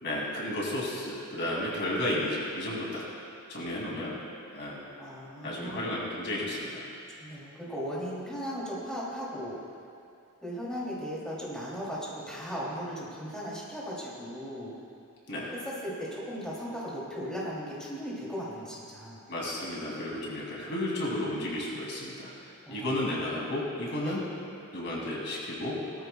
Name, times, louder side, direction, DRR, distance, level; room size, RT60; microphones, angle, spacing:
voice 1, 0.0-3.0 3.5-4.2 4.5-4.9 5.4-6.8 15.3-15.5 19.3-24.2 24.7-25.8, left 1 dB, 55° left, -4 dB, 2.6 m, -33 dB
voice 2, 5.0-5.8 7.1-9.6 10.4-14.7 15.5-19.2 22.7-22.9 24.0-24.2, equal, 5° left, -7 dB, 2.8 m, -37 dB
19.0 x 13.5 x 2.3 m, 2.5 s
head